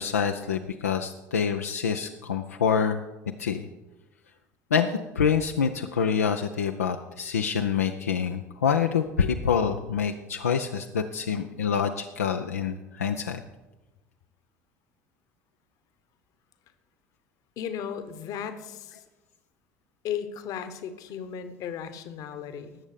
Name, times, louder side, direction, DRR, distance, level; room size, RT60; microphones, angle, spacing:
voice 1, 0.0-3.0 3.4-3.7 4.7-13.4, left 7 dB, 75° left, 5 dB, 0.6 m, -26 dB
voice 2, 17.6-19.0 20.0-22.8, left 8 dB, 50° left, 11 dB, 1.2 m, -35 dB
19.0 x 7.3 x 5.1 m, 1.1 s
figure-of-eight pair, 65°, 8 cm